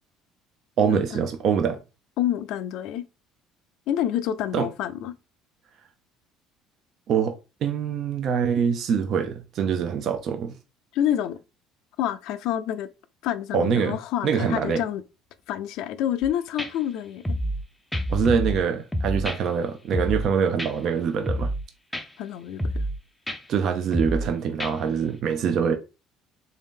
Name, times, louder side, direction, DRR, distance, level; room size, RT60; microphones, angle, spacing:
voice 1, 0.8-1.8 4.5-4.7 7.1-7.3 7.6-10.6 13.5-14.0 14.2-14.8 18.1-21.5 23.5-25.8, right 7 dB, 50° right, 0.5 m, -24 dB
voice 2, 2.2-3.0 3.9-5.1 10.9-11.4 12.0-12.9 13.2-15.0 15.5-17.4 22.2-22.6, left 11 dB, 70° left, 0.4 m, -28 dB
sound 1, 16.2-16.3 16.6-16.7 17.2-17.6 17.9-18.6 18.9-19.4 19.9-20.3 20.6-20.7 21.3-21.6 21.9-22.0 22.6-23.0 23.3-23.4 23.9-24.3 24.6-24.7, equal, 5° left, 0.4 m, -27 dB
3.5 x 2.7 x 3.6 m
cardioid pair, 135°, 0 cm